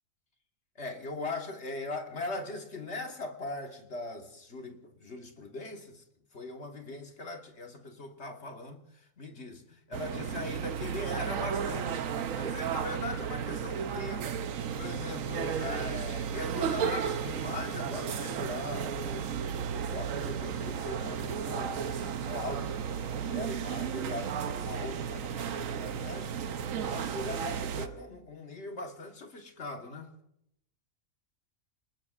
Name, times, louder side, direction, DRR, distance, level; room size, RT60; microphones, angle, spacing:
voice 1, 0.8-6.0 6.3-14.4 14.8-19.3 19.7-26.3 26.8-30.1, left 2 dB, 55° left, 1.7 m, -40 dB
sound 1, 9.9-27.9, right 7 dB, 70° right, 1.1 m, -34 dB
28.5 x 20.0 x 2.5 m
omnidirectional pair, 1.5 m